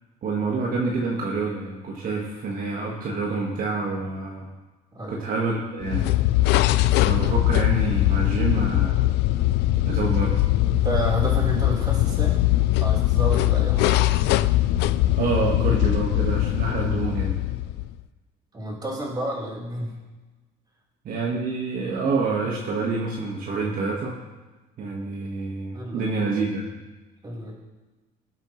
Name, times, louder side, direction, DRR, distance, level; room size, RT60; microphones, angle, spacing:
voice 1, 0.2-4.5 5.1-6.1 6.9-9.1 9.9-10.4 15.1-17.4 21.1-24.2 24.8-26.7, right 3 dB, 55° right, -3 dB, 1.8 m, -27 dB
sound 1, 5.8-18.0, left 15 dB, 85° left, 0.5 m, -21 dB
voice 2, 10.7-12.5 12.8-14.3 17.1-17.2 18.5-20.0 25.7-26.2 27.2-27.5, right 1 dB, 25° right, -5 dB, 4.4 m, -31 dB
20.0 x 8.2 x 3.3 m, 1.2 s
cardioid pair, 110°, 17 cm